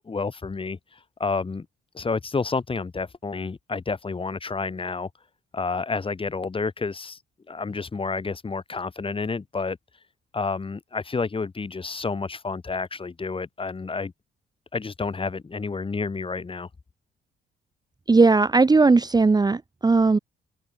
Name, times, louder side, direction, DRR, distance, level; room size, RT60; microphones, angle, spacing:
voice 1, 0.0-1.7 1.9-5.1 5.5-7.2 7.5-9.8 10.3-14.1 14.7-16.7, left 4 dB, 25° left, 1.9 m, -30 dB
voice 2, 18.1-20.2, right 3 dB, 20° right, 0.9 m, -18 dB
open air
cardioid pair, 90°, 20 cm